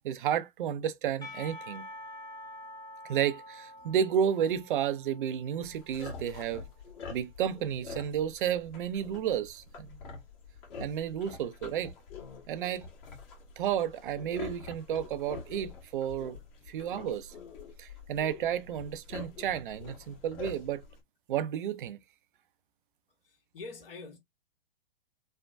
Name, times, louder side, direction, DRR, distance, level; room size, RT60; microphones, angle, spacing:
voice 1, 0.0-1.9 3.1-6.6 7.1-10.0 10.8-11.9 12.5-12.8 13.6-16.4 16.7-17.3 17.8-20.8 21.3-22.0, right 9 dB, 55° right, 0.5 m, -32 dB
Percussion / Church bell, 1.2-6.4, left 1 dB, 10° left, 0.7 m, -47 dB
sound 1, 5.6-21.0, left 5 dB, 45° left, 1.5 m, -46 dB
voice 2, 23.2-24.2, left 3 dB, 65° left, 1.4 m, -45 dB
3.3 x 2.1 x 2.4 m
hypercardioid pair, 115°, 30 cm